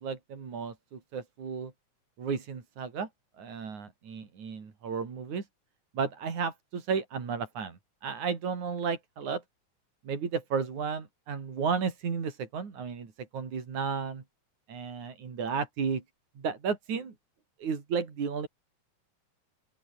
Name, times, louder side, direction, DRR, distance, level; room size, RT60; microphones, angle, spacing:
voice 1, 0.0-1.7 2.2-3.1 3.4-5.4 5.9-9.4 10.0-14.2 14.7-16.0 16.4-17.1 17.6-18.5, right 6 dB, 75° right, 5.1 m, -33 dB
open air
omnidirectional pair, 3.4 m